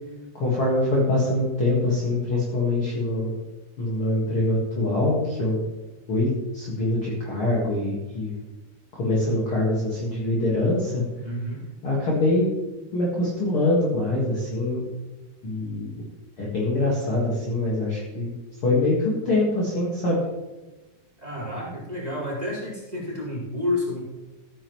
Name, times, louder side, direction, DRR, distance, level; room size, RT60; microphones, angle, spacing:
voice 1, 0.3-3.3 3.8-5.6 6.1-8.4 8.9-11.0 11.8-12.5 12.9-14.9 15.4-16.0 16.4-18.3 18.6-20.2, left 2 dB, 45° left, -5 dB, 2.3 m, -24 dB
voice 2, 11.2-11.6 21.2-24.0, left 1 dB, 10° right, -6 dB, 4.3 m, -30 dB
14.5 x 9.8 x 3.1 m, 1.1 s
omnidirectional pair, 4.0 m